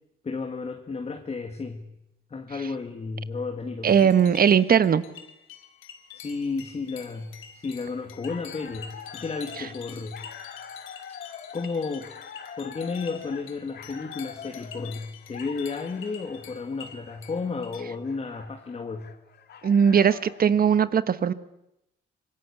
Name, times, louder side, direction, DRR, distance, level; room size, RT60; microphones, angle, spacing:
voice 1, 0.2-1.9 2.3-4.1 6.1-10.3 11.1-11.2 11.5-12.1 12.6-19.1, left 4 dB, 30° left, 4 dB, 2.0 m, -33 dB
voice 2, 3.8-5.0 19.6-21.3, right 7 dB, 50° right, 13 dB, 1.2 m, -19 dB
sound 1, 3.9-17.8, left 8 dB, 90° left, 2.4 m, -47 dB
sound 2, 8.0-20.5, left 7 dB, 55° left, 1.9 m, -45 dB
25.0 x 21.5 x 8.4 m, 0.86 s
cardioid pair, 90°, 20 cm